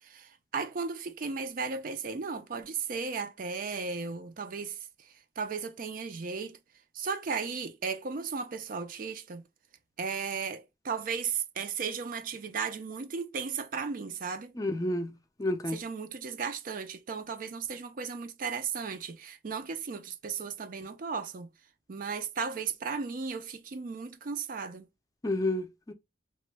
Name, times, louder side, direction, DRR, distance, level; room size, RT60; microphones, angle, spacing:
voice 1, 0.0-5.1 5.4-6.6 6.9-9.4 10.0-14.5 15.7-21.5 21.9-24.9, right 5 dB, 50° right, 0.4 m, -35 dB
voice 2, 14.6-15.1 15.4-15.8 25.2-25.9, left 1 dB, 20° left, 0.5 m, -30 dB
3.0 x 2.1 x 3.2 m
head